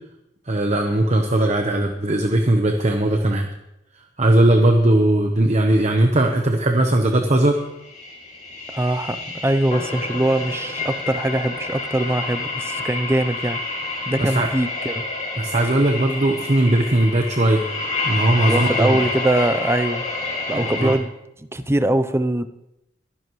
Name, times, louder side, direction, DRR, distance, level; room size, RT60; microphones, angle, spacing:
voice 1, 0.5-3.5 4.2-7.6 14.2-14.5 15.4-17.6 18.0-19.0 20.5-21.0, right 1 dB, 35° right, 4 dB, 1.0 m, -18 dB
sound 1, 7.8-21.0, left 3 dB, 40° left, 5.1 m, -28 dB
voice 2, 8.7-13.6 14.1-15.0 18.5-20.1 20.5-21.1 21.4-22.5, right 1 dB, 15° right, 9 dB, 0.6 m, -22 dB
23.0 x 10.5 x 3.2 m, 0.88 s
head